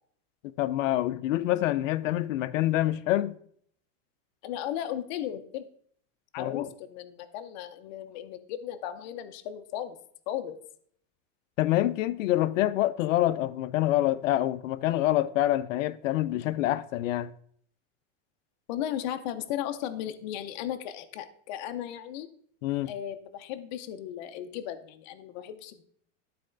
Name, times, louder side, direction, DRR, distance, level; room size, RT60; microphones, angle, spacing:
voice 1, 0.6-3.4 6.4-6.7 11.6-17.3 22.6-22.9, left 14 dB, 80° left, 0.5 m, -26 dB
voice 2, 4.4-5.6 6.3-10.0 10.3-10.6 18.7-22.3 22.9-25.8, left 11 dB, 35° left, 0.5 m, -36 dB
12.0 x 4.2 x 3.7 m
supercardioid pair, 180°, 38 cm